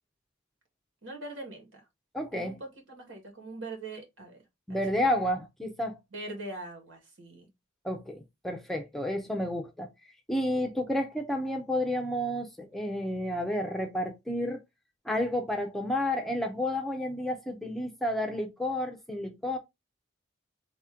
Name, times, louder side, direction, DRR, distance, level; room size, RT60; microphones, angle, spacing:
voice 1, 1.0-1.8 2.3-4.4 4.7-5.1 6.1-7.5, right 2 dB, 70° right, 1.9 m, -42 dB
voice 2, 2.1-2.6 4.7-6.0 7.8-9.9 10.3-14.6 15.1-19.6, left 1 dB, ahead, 0.6 m, -31 dB
4.1 x 3.0 x 3.7 m
head